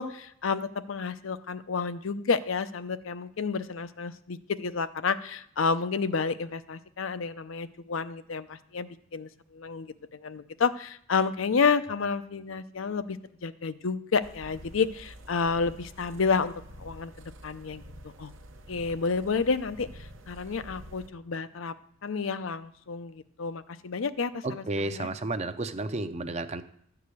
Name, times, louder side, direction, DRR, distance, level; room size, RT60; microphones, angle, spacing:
voice 1, 0.0-18.3 18.7-21.7 22.0-25.1, left 5 dB, 75° left, 12 dB, 0.6 m, -30 dB
sound 1, 14.2-21.1, equal, 75° right, 0.9 m, -48 dB
voice 2, 24.4-26.6, right 2 dB, 35° right, 10 dB, 0.6 m, -32 dB
12.0 x 4.8 x 8.3 m, 0.68 s
head